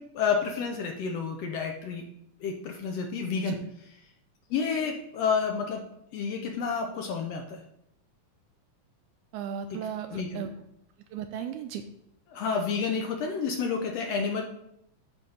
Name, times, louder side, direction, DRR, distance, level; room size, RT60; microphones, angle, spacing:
voice 1, 0.1-2.0 2.4-3.9 4.5-5.8 6.1-7.6 9.7-9.8 10.1-10.4 12.3-14.4, left 5 dB, 70° left, 3 dB, 1.6 m, -30 dB
voice 2, 9.3-10.5 11.1-11.8, right 8 dB, 80° right, 7 dB, 1.9 m, -36 dB
9.0 x 3.5 x 5.4 m, 0.75 s
omnidirectional pair, 3.6 m